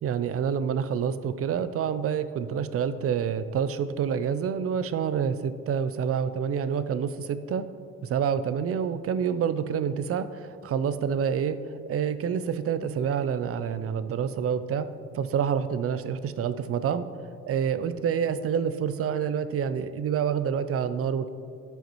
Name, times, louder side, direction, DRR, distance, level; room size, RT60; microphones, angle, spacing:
voice 1, 0.0-7.7 8.0-11.6 11.9-14.9 15.1-17.1 17.4-21.3, right 7 dB, 50° right, 12 dB, 0.5 m, -27 dB
13.0 x 5.6 x 3.1 m, 2.5 s
cardioid pair, 90°, 30 cm